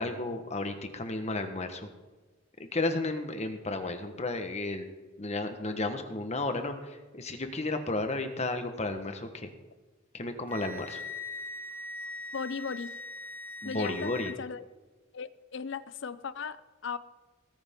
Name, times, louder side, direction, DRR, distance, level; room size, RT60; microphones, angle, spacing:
voice 1, 0.0-1.9 2.6-4.9 5.2-9.5 10.1-11.0 13.6-14.3, left 2 dB, 35° left, 7 dB, 1.3 m, -33 dB
Wind instrument woodwind instrument, 10.5-14.4, left 2 dB, 10° left, 0.9 m, -41 dB
voice 2, 12.3-12.9 13.6-14.7 15.1-17.0, left 5 dB, 65° left, 16 dB, 0.6 m, -37 dB
19.5 x 10.0 x 3.8 m, 1.3 s
head